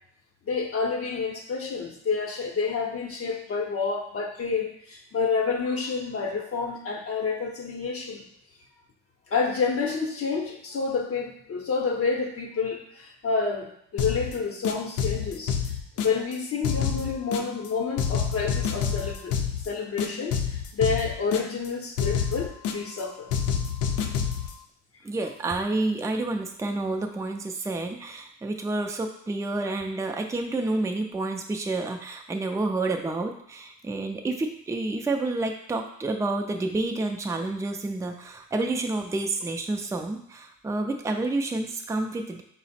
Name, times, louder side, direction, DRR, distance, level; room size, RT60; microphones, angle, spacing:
voice 1, 0.4-8.2 9.3-15.6 16.0-23.4, left 5 dB, 50° left, 1 dB, 0.7 m, -29 dB
sound 1, 14.0-14.3 14.6-16.3 16.6-17.7 18.0-19.7 20.0-21.7 22.0-23.0 23.3-24.5, left 7 dB, 80° left, 0.5 m, -28 dB
voice 2, 25.0-42.4, right 2 dB, 10° right, 3 dB, 0.4 m, -29 dB
4.8 x 2.0 x 4.2 m, 0.70 s
cardioid pair, 90°, 30 cm